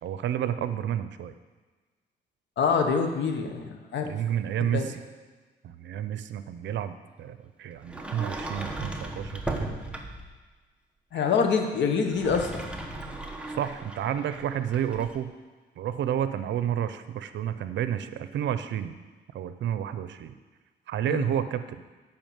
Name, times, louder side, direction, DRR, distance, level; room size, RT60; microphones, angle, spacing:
voice 1, 0.0-1.3 4.0-5.0 5.6-9.7 13.6-15.3 15.8-19.0 19.3-20.3 20.9-21.8, right 10 dB, 80° right, 11 dB, 0.6 m, -30 dB
voice 2, 2.6-4.1 4.6-4.9 11.1-12.6 21.1-21.3, left 5 dB, 75° left, 4 dB, 1.2 m, -26 dB
Sliding door, 7.8-10.4 12.0-15.2, right 2 dB, 5° right, 1.0 m, -36 dB
8.8 x 5.8 x 7.3 m, 1.3 s
cardioid pair, 105°, 19 cm